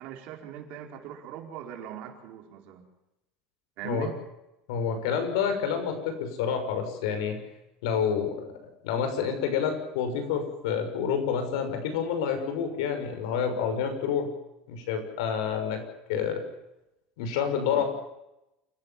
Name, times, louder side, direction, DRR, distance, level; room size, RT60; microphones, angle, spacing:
voice 1, 0.0-2.8 3.8-4.1 17.7-17.8, right 10 dB, 45° right, 3 dB, 4.5 m, -40 dB
voice 2, 4.7-7.4 7.8-14.3 14.7-15.8 16.1-16.4 17.2-17.8, left 7 dB, 80° left, 7 dB, 6.4 m, -28 dB
28.0 x 16.0 x 7.5 m, 0.91 s
cardioid pair, 180°, 3 cm